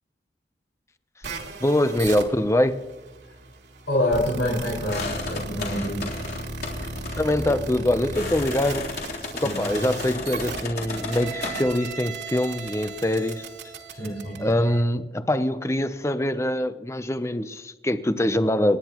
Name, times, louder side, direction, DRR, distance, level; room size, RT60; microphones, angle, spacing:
sound 1, 1.2-14.8, right 3 dB, 80° right, 2.8 m, -36 dB
voice 1, 1.6-2.8 7.2-8.9 9.4-13.5 14.4-18.8, left 1 dB, 15° left, 11 dB, 0.7 m, -24 dB
voice 2, 3.9-6.1 9.4-9.6 13.9-14.5, left 1 dB, 85° left, -6 dB, 5.6 m, -27 dB
sound 2, 4.9-11.6, left 2 dB, 60° left, 3.6 m, -34 dB
29.5 x 10.5 x 3.0 m, 1.2 s
head